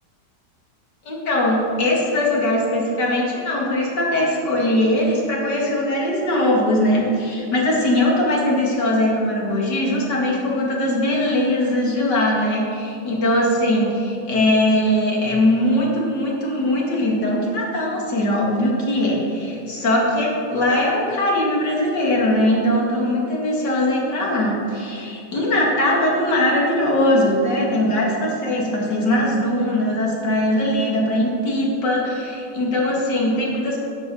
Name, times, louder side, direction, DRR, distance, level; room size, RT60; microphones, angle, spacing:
voice 1, 1.1-33.8, left 1 dB, 80° left, -3 dB, 2.7 m, -20 dB
12.5 x 7.0 x 5.4 m, 2.7 s
omnidirectional pair, 1.8 m